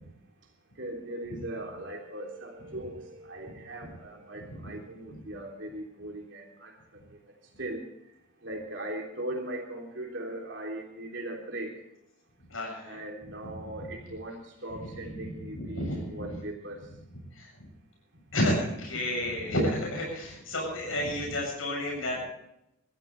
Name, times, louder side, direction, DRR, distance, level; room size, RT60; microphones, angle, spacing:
voice 1, 0.8-7.2 7.6-7.8 8.4-11.7 12.8-16.8 18.9-19.0, right 1 dB, 60° right, 0 dB, 3.2 m, -39 dB
voice 2, 12.5-13.0 14.7-14.9 15.1-16.4 17.3-17.5 18.3-22.2, left 1 dB, 80° left, -1 dB, 7.8 m, -31 dB
23.5 x 15.0 x 3.3 m, 0.81 s
head